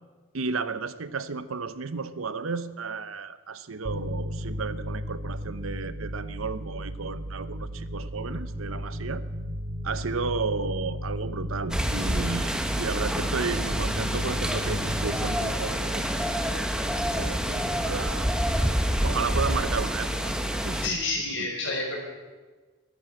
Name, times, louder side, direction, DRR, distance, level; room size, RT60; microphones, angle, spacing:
voice 1, 0.3-9.2 9.8-18.4 19.0-21.0 21.4-21.5, right 4 dB, 85° right, 14 dB, 0.8 m, -33 dB
sound 1, 3.8-17.0, equal, 40° right, 3.1 m, -35 dB
sound 2, 11.7-20.9, equal, 5° right, 1.0 m, -27 dB
voice 2, 20.8-22.0, left 3 dB, 60° left, -1 dB, 5.5 m, -29 dB
14.0 x 12.0 x 8.7 m, 1.3 s
head